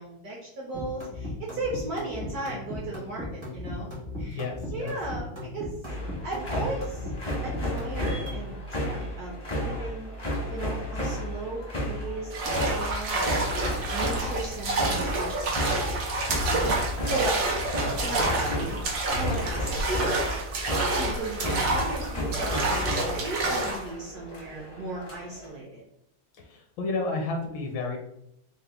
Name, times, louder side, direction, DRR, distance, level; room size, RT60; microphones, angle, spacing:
voice 1, 0.0-3.9 4.2-4.4 4.7-7.1 7.4-10.1 10.5-12.3 12.5-13.4 13.9-15.8 16.4-17.4 18.0-18.8 19.1-20.2 20.9-25.8, right 2 dB, 70° right, -3 dB, 0.9 m, -36 dB
sound 1, 0.7-8.5, left 1 dB, 40° right, 0.4 m, -37 dB
voice 2, 4.3-5.0 17.9-18.3 26.4-28.0, left 3 dB, 75° left, 2 dB, 1.3 m, -32 dB
sound 2, 5.9-25.5, equal, 35° left, 0.5 m, -33 dB
sound 3, 12.3-23.9, right 2 dB, 90° right, 0.7 m, -28 dB
3.6 x 2.1 x 3.4 m, 0.75 s
omnidirectional pair, 2.2 m